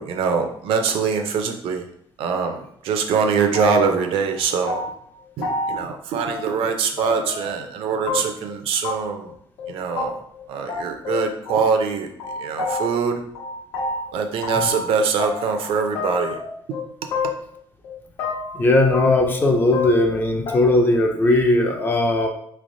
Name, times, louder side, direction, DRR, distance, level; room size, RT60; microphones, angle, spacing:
voice 1, 0.0-1.8 2.2-4.8 5.4-9.3 9.7-10.2 10.5-12.1 12.4-13.2 14.1-16.4, right 5 dB, 70° right, 5 dB, 0.5 m, -23 dB
sound 1, 3.5-4.0 4.3-5.1 5.4-5.8 6.2-6.7 7.0-7.5 8.1-8.5 8.8-8.9 9.2-9.3 9.6-9.7 10.0-10.1 10.3-10.4 10.7-11.9 12.2-13.1 13.3-14.9 15.2-15.7 16.0-16.8 17.1-17.6 17.8-18.6 18.9-19.5 19.7-20.2 20.5-20.6, left 3 dB, 90° left, 1.1 m, -28 dB
voice 2, 18.5-22.3, left 2 dB, 20° left, 3 dB, 0.4 m, -18 dB
3.8 x 3.2 x 2.6 m, 0.68 s
cardioid pair, 175°, 10 cm